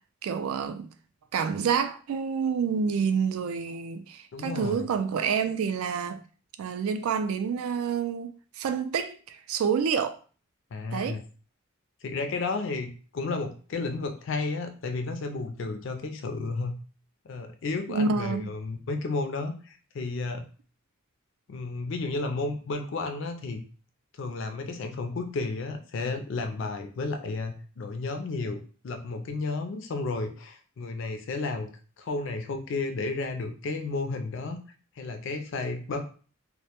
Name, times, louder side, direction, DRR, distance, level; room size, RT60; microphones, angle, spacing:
voice 1, 0.2-0.9 1.3-6.2 6.6-10.2 10.9-11.2 17.9-18.5, right 6 dB, 80° right, 0.3 m, -28 dB
voice 2, 4.3-4.9 10.7-11.2 12.0-16.8 17.2-20.4 21.5-23.6 24.2-31.7 32.0-34.6 35.0-36.0, left 3 dB, 60° left, 0.4 m, -32 dB
2.1 x 2.1 x 2.8 m
head